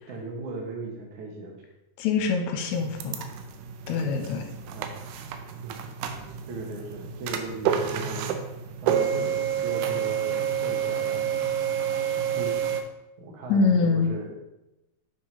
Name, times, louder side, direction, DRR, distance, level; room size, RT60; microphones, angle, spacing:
voice 1, 0.1-1.6 3.9-4.2 4.7-5.0 5.6-5.8 6.5-8.4 8.8-11.3 12.3-12.7 13.2-14.4, right 3 dB, 70° right, 0 dB, 1.8 m, -37 dB
voice 2, 2.0-3.2 3.9-4.4 13.5-14.2, left 4 dB, 80° left, 4 dB, 2.8 m, -24 dB
sound 1, 2.7-12.8, right 8 dB, 90° right, 2.4 m, -29 dB
8.6 x 4.8 x 4.1 m, 0.93 s
omnidirectional pair, 5.3 m